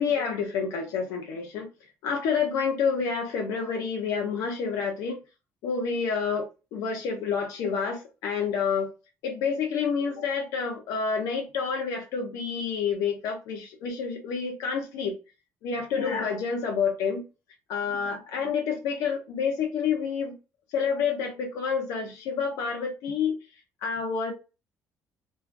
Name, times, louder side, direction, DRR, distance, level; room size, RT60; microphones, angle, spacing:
voice 1, 0.0-1.7 2.0-5.2 5.6-8.9 9.2-15.2 15.6-17.2 17.7-20.3 20.7-23.4 23.8-24.3, left 6 dB, 85° left, 0.7 m, -28 dB
2.3 x 2.3 x 2.5 m
cardioid pair, 150°, 6 cm